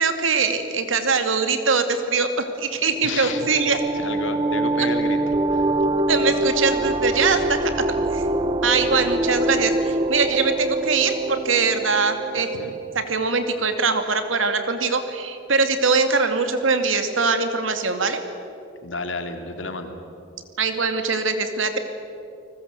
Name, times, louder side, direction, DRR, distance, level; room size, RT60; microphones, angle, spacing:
voice 1, 0.0-3.8 6.1-7.7 8.1-8.2 8.6-12.5 12.9-18.2 20.6-21.8, right 4 dB, 85° right, 7 dB, 2.5 m, -22 dB
sound 1, 2.8-13.1, right 2 dB, 25° right, 1.0 m, -24 dB
voice 2, 3.0-3.5 3.9-5.2 5.5-5.8 12.6-12.7 18.8-20.0, left 3 dB, 75° left, 6 dB, 2.7 m, -31 dB
30.0 x 20.0 x 8.3 m, 2.7 s
head